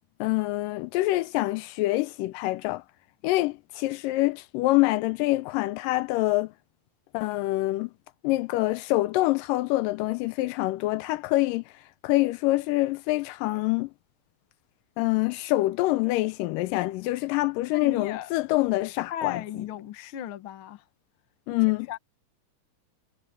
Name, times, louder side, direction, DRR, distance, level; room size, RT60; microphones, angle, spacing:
voice 1, 0.2-2.8 3.2-6.5 7.1-7.9 8.2-11.6 12.0-13.9 15.0-19.4 21.5-21.9, left 19 dB, 80° left, 2.1 m, -25 dB
voice 2, 17.7-18.3 19.1-20.8 21.5-21.6 21.9-22.0, left 10 dB, 65° left, 1.3 m, -35 dB
omnidirectional pair, 4.0 m